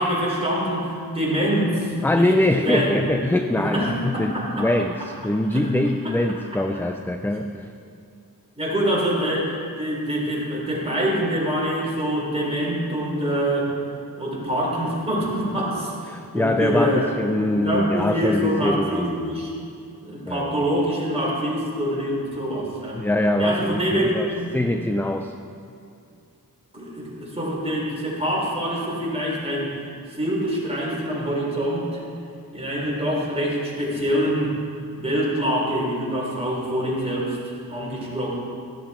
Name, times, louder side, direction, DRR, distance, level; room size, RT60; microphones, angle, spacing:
voice 1, 0.0-3.0 3.6-4.7 5.5-5.7 6.0-6.2 6.7-6.8 8.6-13.7 14.2-17.1 17.6-19.5 20.0-23.0 23.4-24.6 26.7-29.7 30.1-32.0 32.5-34.6 35.0-38.3, equal, 15° right, -5 dB, 4.0 m, -25 dB
voice 2, 2.0-7.7 16.1-19.4 20.3-20.6 23.0-25.3, left 1 dB, 5° left, 6 dB, 0.4 m, -23 dB
14.0 x 12.5 x 4.4 m, 2.5 s
wide cardioid pair, 100°, 37 cm